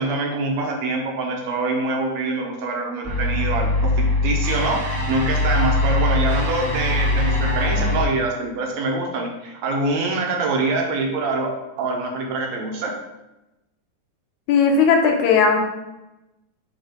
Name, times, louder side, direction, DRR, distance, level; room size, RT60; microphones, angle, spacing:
voice 1, 0.0-11.5 11.8-12.9, right 3 dB, 70° right, 1 dB, 2.0 m, -25 dB
sound 1, 3.0-8.0, left 2 dB, 30° right, 0.9 m, -21 dB
voice 2, 14.5-15.6, left 5 dB, 75° left, 2 dB, 2.2 m, -16 dB
5.3 x 3.8 x 5.2 m, 0.98 s
omnidirectional pair, 3.5 m